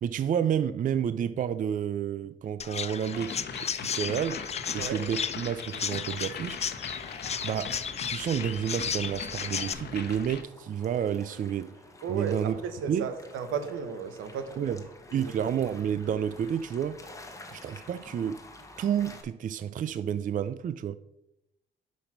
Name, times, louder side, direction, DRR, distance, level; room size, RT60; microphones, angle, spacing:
voice 1, 0.0-4.4 4.7-6.6 7.4-7.8 8.1-11.7 12.1-12.6 12.9-13.1 14.6-14.8 15.1-17.0 17.5-18.4 18.8-21.0, right 9 dB, 40° right, 0.4 m, -30 dB
Chirp tweet, 2.6-9.7, left 7 dB, 35° left, 0.4 m, -34 dB
sound 1, 3.1-10.4, left 6 dB, 55° left, 1.0 m, -40 dB
sound 2, 5.9-19.2, left 2 dB, 15° left, 1.1 m, -51 dB
voice 2, 12.0-14.8 15.1-15.3, right 6 dB, 90° right, 0.9 m, -34 dB
5.6 x 5.2 x 5.9 m
cardioid pair, 90°, 20 cm